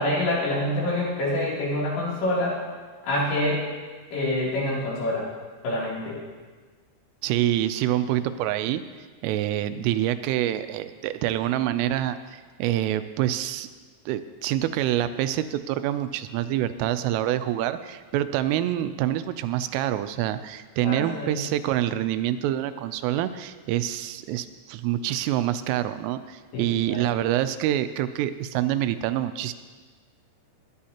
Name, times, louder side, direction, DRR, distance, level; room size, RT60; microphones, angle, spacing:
voice 1, 0.0-2.6 3.0-3.6 4.1-5.3 5.6-6.2 20.8-21.4 26.5-27.0, left 1 dB, 65° left, -7 dB, 5.1 m, -26 dB
voice 2, 7.2-8.8 9.2-13.7 14.1-29.5, right 12 dB, 85° right, 11 dB, 3.1 m, -26 dB
17.5 x 12.0 x 2.9 m, 1.4 s
omnidirectional pair, 5.7 m